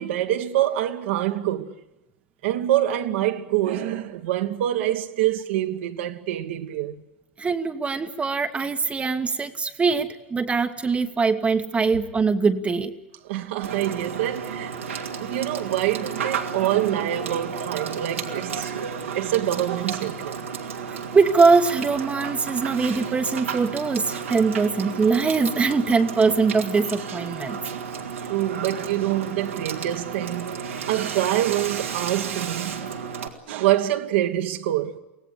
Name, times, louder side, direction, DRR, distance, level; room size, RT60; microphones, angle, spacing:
voice 1, 0.0-1.7 2.4-7.0 13.2-14.8 15.2-18.7 19.1-20.4 28.3-32.9 33.5-35.0, right 13 dB, 65° right, 1.6 m, -25 dB
voice 2, 7.4-12.9 20.9-27.6, right 4 dB, 20° right, 1.2 m, -22 dB
Water / Water tap faucet / Sink (filling or washing), 13.6-33.3, right 6 dB, 85° right, 2.4 m, -32 dB
24.5 x 17.5 x 9.8 m
hypercardioid pair, 95°, 7 cm